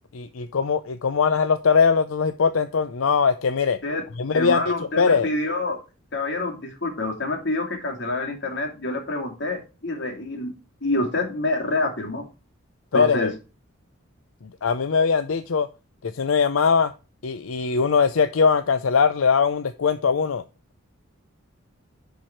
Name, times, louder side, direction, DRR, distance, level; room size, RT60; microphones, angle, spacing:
voice 1, 0.1-3.8 4.2-5.3 12.9-13.3 14.6-15.7 16.0-16.9 17.2-20.4, left 5 dB, 85° left, 0.6 m, -21 dB
voice 2, 4.3-5.8 6.1-10.5 10.8-12.3 12.9-13.3, left 2 dB, 60° left, 2.6 m, -27 dB
10.0 x 4.7 x 4.4 m
head